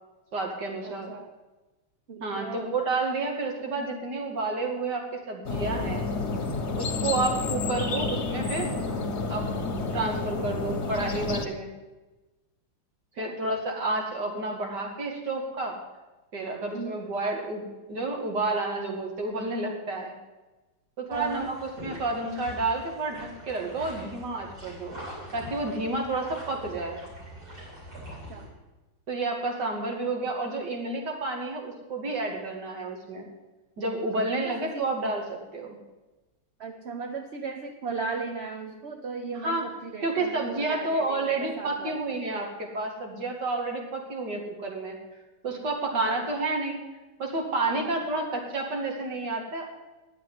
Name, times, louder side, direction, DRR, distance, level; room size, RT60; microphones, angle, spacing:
voice 1, 0.3-1.1 2.2-6.1 6.7-8.7 9.3-9.5 9.8-11.7 13.2-15.8 16.3-20.1 21.0-24.9 25.3-27.0 29.1-33.3 33.8-35.8 39.4-39.6 40.0-45.0 45.4-46.8 47.2-49.7, right 2 dB, 65° right, 1 dB, 2.9 m, -30 dB
voice 2, 0.8-1.3 2.1-2.7 7.0-7.3 13.2-13.4 16.7-17.0 21.1-21.5 28.3-28.5 29.9-30.1 34.4-34.9 36.6-42.0 45.9-46.3 47.7-48.0, right 4 dB, 45° right, 4 dB, 0.9 m, -37 dB
sound 1, 5.4-11.4, left 3 dB, 40° left, 1.3 m, -30 dB
sound 2, 21.1-28.5, equal, 85° right, 7.2 m, -43 dB
10.5 x 8.3 x 9.5 m, 1.1 s
omnidirectional pair, 2.0 m